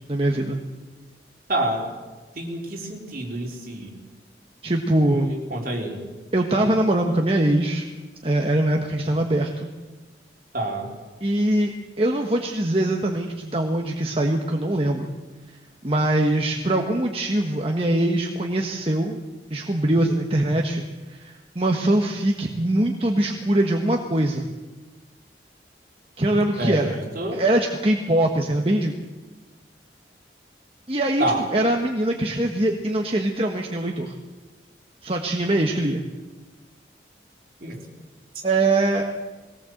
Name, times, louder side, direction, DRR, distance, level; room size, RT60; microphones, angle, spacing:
voice 1, 0.1-0.6 4.6-5.3 6.3-7.8 8.2-9.7 11.2-11.7 12.0-15.1 15.8-19.2 19.5-24.5 26.2-27.0 27.3-28.9 30.9-31.3 31.5-34.1 35.0-36.0 38.4-39.0, right 1 dB, 30° right, 2 dB, 1.4 m, -22 dB
voice 2, 1.5-1.9 2.3-4.0 5.1-6.0 10.5-10.9 26.6-27.4 31.2-31.5 37.6-37.8, right 1 dB, 50° right, 0 dB, 4.1 m, -28 dB
21.0 x 18.5 x 7.9 m, 1.3 s
head